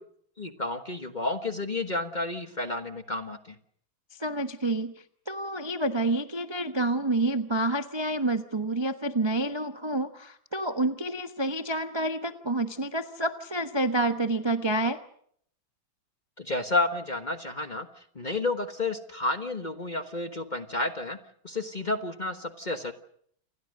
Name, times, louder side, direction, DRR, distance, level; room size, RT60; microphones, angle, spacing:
voice 1, 0.4-3.5 16.4-17.9 18.1-21.2 21.4-22.9, left 2 dB, 25° left, 8 dB, 1.2 m, -31 dB
voice 2, 4.2-15.0, right 2 dB, 20° right, 8 dB, 0.8 m, -28 dB
29.0 x 21.0 x 6.5 m, 0.66 s
omnidirectional pair, 2.1 m